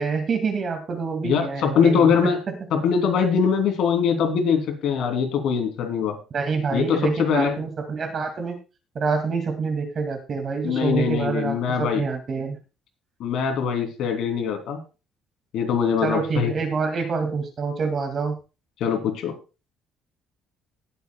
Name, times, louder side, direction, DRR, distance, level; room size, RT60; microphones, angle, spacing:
voice 1, 0.0-2.3 6.3-8.6 8.9-12.6 16.0-18.3, right 5 dB, 40° right, 5 dB, 2.3 m, -26 dB
voice 2, 1.2-2.4 2.7-6.2 6.7-7.6 10.6-12.0 13.2-14.8 15.5-16.5 18.8-19.3, left 6 dB, 70° left, 4 dB, 3.1 m, -22 dB
19.0 x 8.0 x 2.3 m, 0.32 s
cardioid pair, 135°, 0 cm